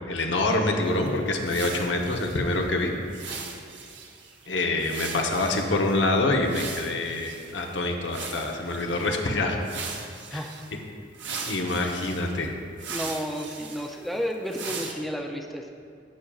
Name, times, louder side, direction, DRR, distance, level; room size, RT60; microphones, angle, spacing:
voice 1, 0.1-2.9 4.5-9.6 10.3-10.4 10.7-10.8 11.5-12.5, left 2 dB, 80° left, 2 dB, 0.9 m, -26 dB
sound 1, 0.8-7.7 8.1-9.2 9.6-10.7 11.1-14.9, right 5 dB, 80° right, 0.8 m, -39 dB
voice 2, 10.3-10.7 12.9-15.7, equal, ahead, 1 dB, 0.4 m, -32 dB
12.0 x 7.4 x 2.4 m, 2.3 s
head